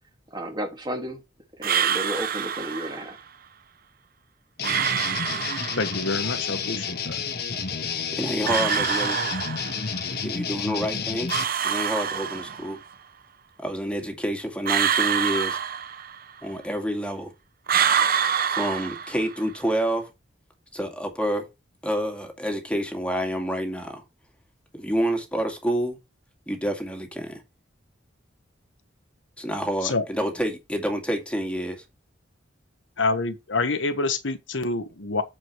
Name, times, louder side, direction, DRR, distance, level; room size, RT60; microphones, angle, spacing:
voice 1, 0.3-1.2 1.6-3.2, equal, 25° right, 2.1 m, -32 dB
sound 1, 1.6-3.1 4.6-6.1 8.4-10.0 11.3-12.8 14.6-16.4 17.7-19.5, right 8 dB, 50° right, 0.7 m, -26 dB
sound 2, 4.6-11.4, left 6 dB, 60° left, 1.3 m, -30 dB
voice 2, 5.8-6.9 29.8-30.0 33.0-35.2, left 3 dB, 80° left, 1.3 m, -26 dB
voice 3, 8.2-9.2 10.2-11.3 11.6-12.8 13.6-15.6 16.4-17.3 18.6-20.0 20.7-21.5 21.8-24.0 24.8-26.0 26.5-27.3 29.4-31.8, equal, 5° left, 2.2 m, -28 dB
14.0 x 5.1 x 3.1 m
head